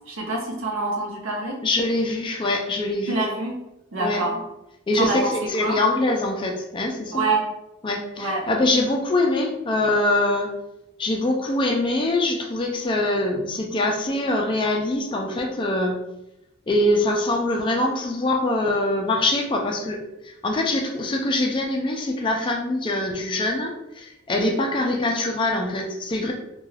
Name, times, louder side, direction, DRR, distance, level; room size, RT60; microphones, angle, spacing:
voice 1, 0.1-1.6 3.1-3.6 3.9-4.4 5.0-5.3 5.6-5.8 7.1-7.4 8.2-8.4, right 2 dB, 75° right, 0 dB, 0.7 m, -25 dB
voice 2, 1.6-3.3 4.0-4.2 4.9-7.2 7.8-10.5 11.0-16.0 16.7-20.0 20.2-26.3, left 2 dB, 25° left, 1 dB, 0.3 m, -23 dB
2.3 x 2.3 x 3.2 m, 0.90 s
head